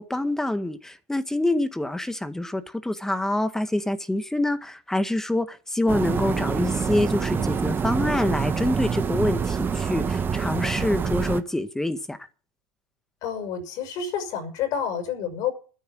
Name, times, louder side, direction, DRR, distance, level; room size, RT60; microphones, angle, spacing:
voice 1, 0.0-12.2, left 1 dB, 5° left, 1.8 m, -26 dB
sound 1, 5.9-11.4, right 6 dB, 25° right, 1.2 m, -26 dB
voice 2, 13.2-15.5, left 8 dB, 60° left, 6.0 m, -29 dB
12.5 x 10.5 x 7.7 m
supercardioid pair, 100°, 8 cm